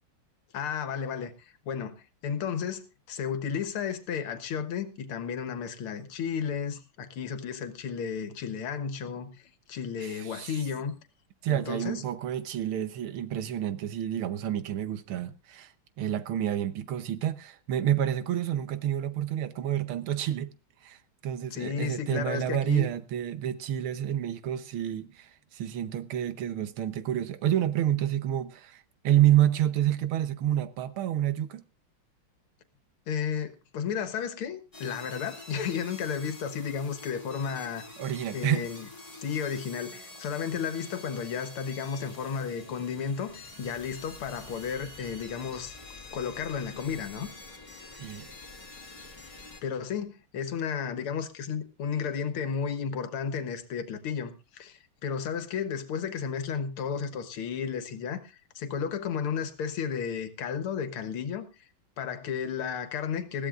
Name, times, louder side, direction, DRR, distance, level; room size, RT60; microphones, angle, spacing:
voice 1, 0.5-2.0 2.2-11.0 11.5-12.0 21.5-22.9 33.1-37.8 38.3-38.9 39.2-45.8 46.1-47.3 49.6-61.7 62.0-63.5, left 7 dB, 85° left, 2.1 m, -33 dB
voice 2, 10.0-10.6 11.4-20.5 20.8-31.6 38.0-38.6 48.0-48.3, right 11 dB, 80° right, 1.8 m, -29 dB
sound 1, 34.7-49.6, left 2 dB, 15° left, 1.9 m, -47 dB
20.5 x 14.5 x 2.5 m
omnidirectional pair, 2.3 m